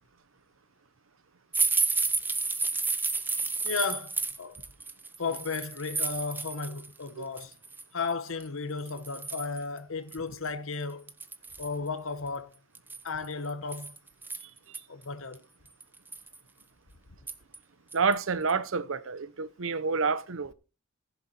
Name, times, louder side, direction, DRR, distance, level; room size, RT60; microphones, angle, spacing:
sound 1, 1.5-6.9 7.2-7.8 8.4-8.5 8.9-9.6 10.1-10.2 10.5-10.6 11.1-11.7 12.7-14.8 15.3-15.4 15.8-16.4 17.3-17.6 17.9-18.1 18.5-18.6, right 3 dB, 10° right, 0.7 m, -31 dB
voice 1, 3.6-4.6 5.2-7.5 7.9-11.1 11.6-12.5 13.0-13.9 14.9-15.4, left 4 dB, 70° left, 1.2 m, -34 dB
voice 2, 17.9-20.5, right 5 dB, 70° right, 0.8 m, -29 dB
15.5 x 7.1 x 4.3 m
head